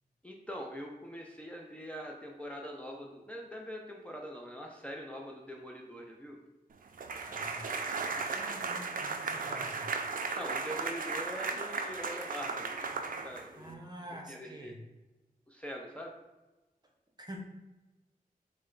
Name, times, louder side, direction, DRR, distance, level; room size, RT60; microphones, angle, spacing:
voice 1, 0.2-6.4 10.3-13.0 13.2-13.8 14.3-14.7 15.5-16.1, equal, 10° left, -1 dB, 0.4 m, -43 dB
sound 1, 7.0-13.7, right 4 dB, 65° right, 0.4 m, -36 dB
voice 2, 7.3-9.8 13.6-14.8 17.2-17.4, right 1 dB, 30° right, 1 dB, 0.7 m, -47 dB
4.2 x 2.1 x 3.8 m, 1.1 s
wide cardioid pair, 80°, 15 cm